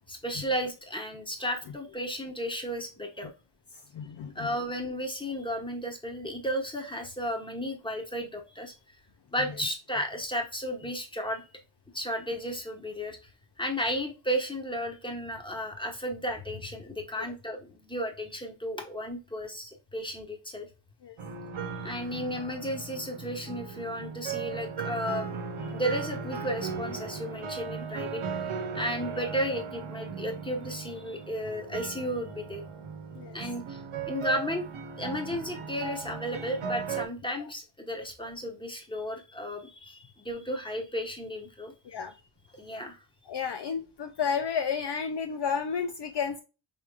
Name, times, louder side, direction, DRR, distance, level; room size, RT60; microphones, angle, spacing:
voice 1, 0.1-3.3 4.3-8.7 9.3-11.5 11.9-13.2 13.6-20.7 21.8-25.3 25.6-28.2 28.7-32.6 33.3-33.8 34.1-34.6 35.0-41.7 42.6-43.0, equal, 10° left, 1.2 m, -33 dB
voice 2, 3.9-4.5 17.2-17.3 21.0-21.2 33.2-33.4 37.4-37.5 41.9-42.1 43.3-46.4, left 6 dB, 55° left, 0.5 m, -32 dB
sound 1, 21.2-37.1, right 5 dB, 75° right, 0.9 m, -37 dB
5.4 x 3.2 x 2.4 m
wide cardioid pair, 90°, 49 cm